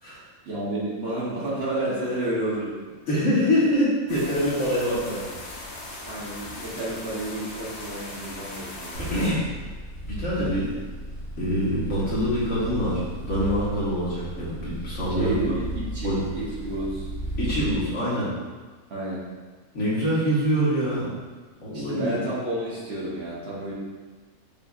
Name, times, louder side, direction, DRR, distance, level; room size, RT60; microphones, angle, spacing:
voice 1, 0.4-2.7 6.1-9.1 15.1-17.1 18.9-19.2 21.7-23.7, right 1 dB, 50° right, -7 dB, 1.0 m, -30 dB
voice 2, 3.1-5.4 9.0-9.4 10.0-10.7 11.4-15.3 16.0-16.2 17.4-18.3 19.7-21.1 21.6-22.1, equal, 60° left, -8 dB, 1.5 m, -25 dB
sound 1, 4.1-9.3, left 2 dB, 85° left, 1.4 m, -39 dB
sound 2, 8.9-17.8, right 1 dB, 85° right, 2.2 m, -34 dB
6.8 x 2.6 x 2.4 m, 1.4 s
omnidirectional pair, 1.5 m